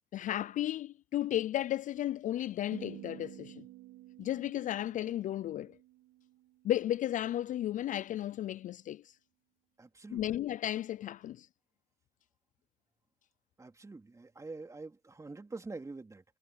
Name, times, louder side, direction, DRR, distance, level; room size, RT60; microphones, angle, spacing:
voice 1, 0.1-3.6 4.2-5.8 6.6-9.0 10.1-11.5, left 12 dB, 50° left, 0.4 m, -34 dB
sound 1, 2.7-7.0, right 17 dB, 80° right, 2.5 m, -52 dB
voice 2, 9.8-10.2 13.6-16.2, right 3 dB, 20° right, 3.2 m, -45 dB
supercardioid pair, 95°, 17 cm